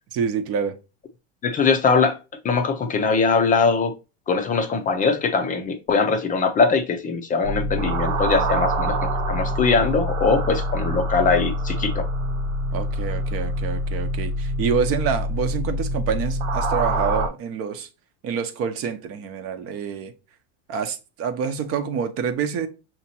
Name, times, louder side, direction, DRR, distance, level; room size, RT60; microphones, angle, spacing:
voice 1, 0.1-0.8 12.7-17.9 18.2-20.1 20.7-22.7, right 6 dB, 45° right, 0.8 m, -27 dB
voice 2, 1.4-2.2 2.4-3.9 4.3-9.0 9.3-12.1, left 4 dB, 25° left, 0.5 m, -21 dB
sound 1, 7.4-17.3, right 1 dB, 75° right, 1.0 m, -25 dB
5.8 x 2.9 x 2.8 m
supercardioid pair, 120°, 33 cm